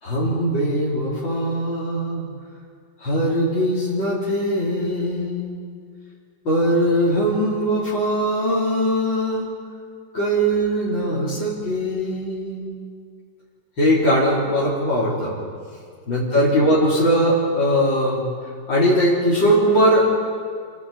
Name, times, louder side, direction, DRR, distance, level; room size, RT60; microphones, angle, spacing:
voice 1, 0.0-2.2 3.0-5.6 6.4-9.5 10.1-12.8 13.8-15.3 16.1-18.2 18.7-20.1, equal, 75° left, -8 dB, 4.5 m, -20 dB
29.5 x 24.0 x 4.3 m, 2.1 s
omnidirectional pair, 2.1 m